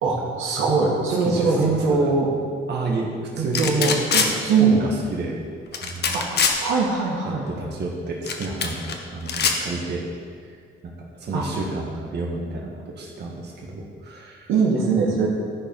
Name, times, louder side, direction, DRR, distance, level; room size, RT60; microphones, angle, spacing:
voice 1, 0.0-2.3 3.3-4.8 6.1-7.4 11.3-11.4 14.5-15.4, right 4 dB, 90° right, -3 dB, 1.9 m, -21 dB
voice 2, 1.2-1.6 1.9-2.1 2.7-4.0 4.6-5.4 5.7-6.2 7.5-10.0 10.4-10.5 10.8-14.5, right 3 dB, 55° right, -2 dB, 1.7 m, -30 dB
sound 1, 3.5-4.3 5.7-6.6 8.3-8.9 9.3-9.6, left 6 dB, 55° left, 1.1 m, -22 dB
13.5 x 4.6 x 5.5 m, 2.1 s
cardioid pair, 90°, 20 cm